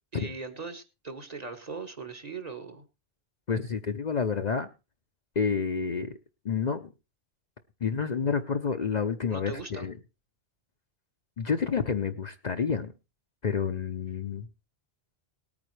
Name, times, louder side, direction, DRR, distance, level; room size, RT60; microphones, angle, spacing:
voice 1, 0.1-2.8 9.3-9.9, right 4 dB, 40° right, 5 dB, 1.4 m, -39 dB
voice 2, 3.5-4.7 5.4-6.1 6.4-6.9 7.8-9.9 11.4-12.9 13.4-14.5, left 6 dB, 45° left, 7 dB, 0.7 m, -29 dB
19.0 x 8.9 x 3.2 m, 0.28 s
omnidirectional pair, 1.1 m